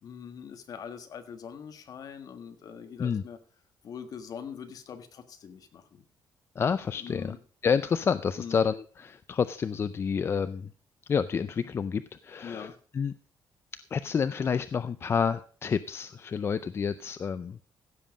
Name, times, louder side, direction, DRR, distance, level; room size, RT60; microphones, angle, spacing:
voice 1, 0.0-3.4 3.8-6.0 7.0-7.4 8.4-8.6 12.4-12.8, left 7 dB, 55° left, 8 dB, 1.6 m, -42 dB
voice 2, 6.6-7.3 7.6-10.7 11.1-12.7 12.9-13.1 13.9-17.6, left 6 dB, 35° left, 13 dB, 0.4 m, -29 dB
15.5 x 7.4 x 5.1 m, 0.41 s
cardioid pair, 160°, 8 cm